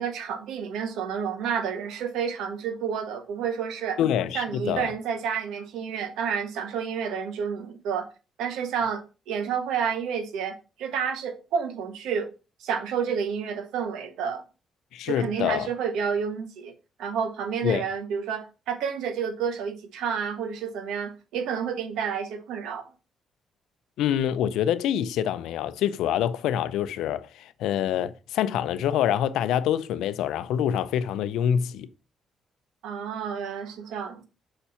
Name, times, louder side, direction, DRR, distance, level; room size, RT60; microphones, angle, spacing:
voice 1, 0.0-4.0 4.3-8.1 8.4-12.3 12.6-14.4 15.0-22.9 32.8-34.3, right 7 dB, 90° right, 1.3 m, -30 dB
voice 2, 4.0-4.9 14.9-15.7 17.6-17.8 24.0-31.9, left 10 dB, 85° left, 0.5 m, -26 dB
5.8 x 4.3 x 5.6 m
cardioid pair, 90°, 0 cm